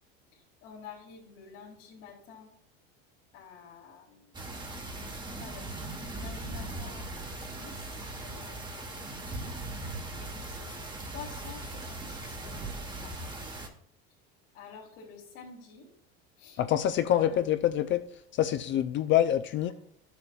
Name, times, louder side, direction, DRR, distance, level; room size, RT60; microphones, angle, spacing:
voice 1, 0.3-2.5 3.3-4.4 5.1-9.4 10.2-10.8 11.1-12.7 13.0-13.5 14.5-15.9 16.4-16.6 17.1-17.4, left 6 dB, 60° left, -5 dB, 2.0 m, -49 dB
sound 1, 4.3-13.7, right 2 dB, 15° right, 1.1 m, -39 dB
voice 2, 16.6-18.1 18.3-19.7, left 11 dB, 40° left, 10 dB, 0.4 m, -26 dB
11.5 x 6.9 x 2.3 m, 0.67 s
supercardioid pair, 105°, 30 cm